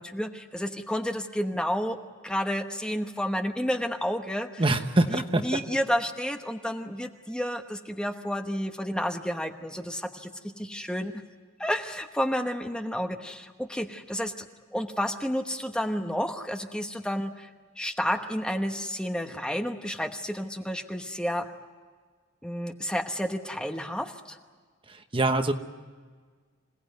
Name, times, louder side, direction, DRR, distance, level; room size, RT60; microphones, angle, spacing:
voice 1, 0.0-2.0 2.2-4.6 5.1-11.2 11.6-14.5 14.7-17.5 17.8-21.5 22.4-24.4, equal, 5° left, 5 dB, 1.0 m, -31 dB
voice 2, 4.6-5.4 24.9-25.5, right 2 dB, 25° right, 7 dB, 1.1 m, -24 dB
26.5 x 18.0 x 9.2 m, 1.5 s
head